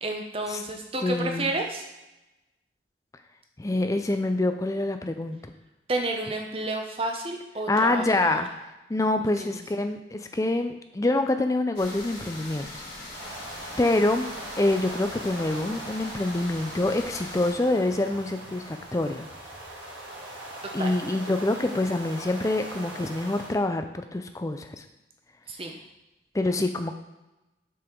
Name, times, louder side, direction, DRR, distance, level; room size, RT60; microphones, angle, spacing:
voice 1, 0.0-1.9 5.9-8.4 9.4-9.6 20.8-20.9 25.5-25.8, right 2 dB, 30° right, 3 dB, 0.7 m, -31 dB
voice 2, 1.0-1.5 3.6-5.5 7.7-8.5 8.9-12.8 13.1-13.3 13.8-14.3 14.6-19.2 20.7-24.8 26.3-26.9, left 2 dB, 20° left, 7 dB, 0.4 m, -26 dB
sound 1, 11.8-17.5, left 1 dB, 60° left, 2.3 m, -41 dB
sound 2, 13.1-23.6, right 1 dB, 85° right, 1.6 m, -40 dB
6.1 x 4.2 x 4.5 m, 0.99 s
head